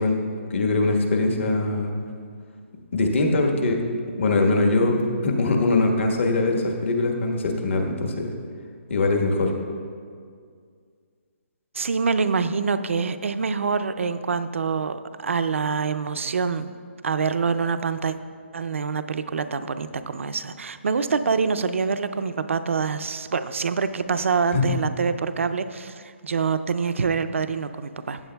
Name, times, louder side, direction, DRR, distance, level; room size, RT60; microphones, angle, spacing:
voice 1, 0.0-1.9 2.9-3.8 4.2-8.3 8.9-9.5 24.5-24.7, left 2 dB, 70° left, 1 dB, 1.4 m, -22 dB
voice 2, 11.7-16.7 17.0-18.2 18.5-28.2, right 5 dB, 80° right, 11 dB, 0.5 m, -25 dB
15.0 x 8.6 x 2.3 m, 2.1 s
hypercardioid pair, 165°, 7 cm